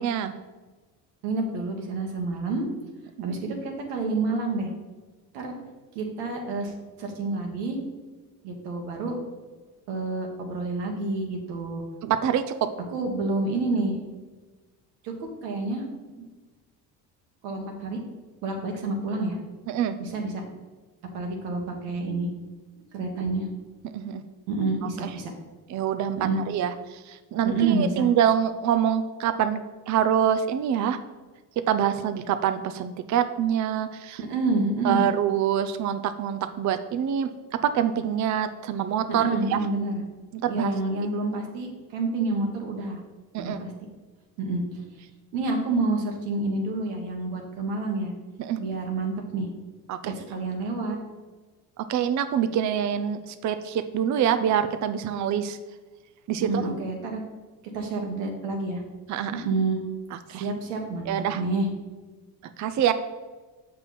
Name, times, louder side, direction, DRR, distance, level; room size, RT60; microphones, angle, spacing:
voice 1, 0.0-0.3 3.2-3.4 12.0-12.7 19.7-20.0 23.9-24.2 25.0-25.1 25.7-26.2 26.5-29.6 29.9-31.0 31.7-34.2 34.8-37.3 37.6-39.6 40.3-40.7 43.3-43.6 48.4-48.6 49.9-50.1 51.8-55.6 56.3-56.6 59.1-59.4 60.1-60.5 61.1-61.4 62.6-62.9, right 9 dB, 40° right, 10 dB, 0.5 m, -25 dB
voice 2, 1.2-2.7 3.2-4.7 5.3-5.5 5.9-6.7 7.0-7.8 8.4-9.2 9.9-11.8 12.9-14.0 15.0-15.1 15.4-15.8 17.4-18.0 18.4-19.4 20.0-20.4 21.1-22.3 22.9-23.5 24.5-25.3 26.2-26.4 27.4-28.0 34.2-35.1 39.1-40.0 40.5-43.0 43.4-43.7 44.4-44.6 45.3-48.1 48.6-49.5 50.0-51.0 56.4-57.2 57.7-58.8 59.3-59.8 60.3-61.7, right 3 dB, 85° right, 2 dB, 1.5 m, -28 dB
6.7 x 5.5 x 4.1 m, 1.3 s
supercardioid pair, 75°, 49 cm